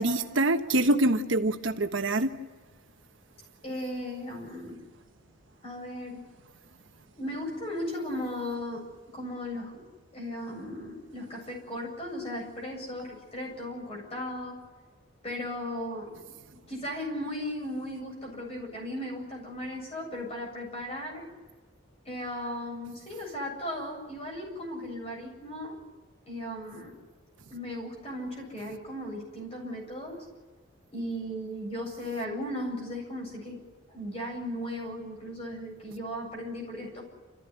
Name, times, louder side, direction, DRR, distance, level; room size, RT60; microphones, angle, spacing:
voice 1, 0.0-2.3, right 1 dB, 65° right, 6 dB, 1.3 m, -25 dB
voice 2, 3.6-4.8 5.6-6.2 7.2-8.9 9.1-9.8 10.1-14.6 15.2-16.2 16.5-21.3 22.0-25.8 26.3-27.0 27.5-30.2 30.9-33.6 33.9-37.0, left 1 dB, 30° left, 0 dB, 7.9 m, -36 dB
28.5 x 15.5 x 9.9 m, 1.3 s
head